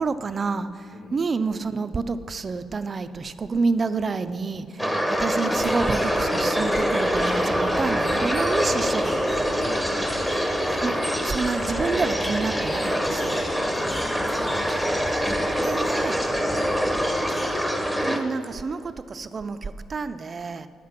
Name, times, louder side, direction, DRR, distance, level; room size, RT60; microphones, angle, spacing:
voice 1, 0.0-4.9 5.2-9.3 10.8-13.4 15.6-16.3 18.0-20.7, right 4 dB, 35° right, 0.4 m, -28 dB
voice 2, 4.8-5.2 9.6-10.1 13.7-14.6, left 1 dB, 80° left, 3.0 m, -42 dB
sound 1, 4.8-18.2, equal, 5° left, 1.0 m, -25 dB
sound 2, 5.5-18.0, left 1 dB, 20° left, 1.3 m, -37 dB
10.5 x 7.5 x 5.9 m
cardioid pair, 90°, 0 cm